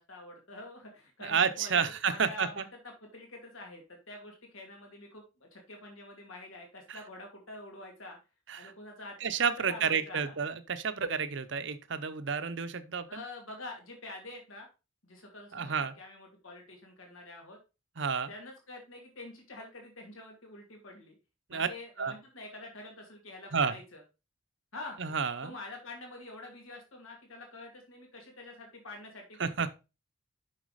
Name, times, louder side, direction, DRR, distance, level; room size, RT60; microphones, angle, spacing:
voice 1, 0.0-2.7 3.0-8.2 8.6-10.3 13.1-14.7 15.0-17.6 18.3-21.1 21.5-24.0 24.7-25.0 25.4-29.4, left 2 dB, 75° left, 2.4 m, -47 dB
voice 2, 1.2-2.6 6.9-7.0 8.5-8.7 9.2-13.2 15.5-15.9 18.0-18.3 21.5-21.7 22.0-22.1 23.5-23.7 25.0-25.5 29.4-29.7, right 6 dB, 60° right, 0.7 m, -30 dB
6.4 x 5.9 x 4.0 m
head